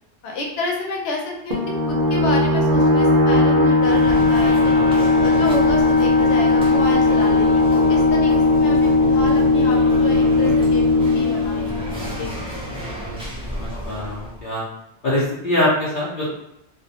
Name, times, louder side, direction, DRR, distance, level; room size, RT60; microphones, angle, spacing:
voice 1, 0.2-1.6 1.9-11.9 12.2-12.3, left 2 dB, 90° left, -1 dB, 1.0 m, -29 dB
sound 1, 1.5-12.8, left 2 dB, 60° right, 0.7 m, -17 dB
sound 2, 3.8-14.4, equal, 10° right, 0.4 m, -32 dB
voice 2, 12.7-13.2 13.5-14.6 15.0-16.3, left 1 dB, 55° left, -8 dB, 0.7 m, -24 dB
2.4 x 2.1 x 2.7 m, 0.84 s
omnidirectional pair, 1.1 m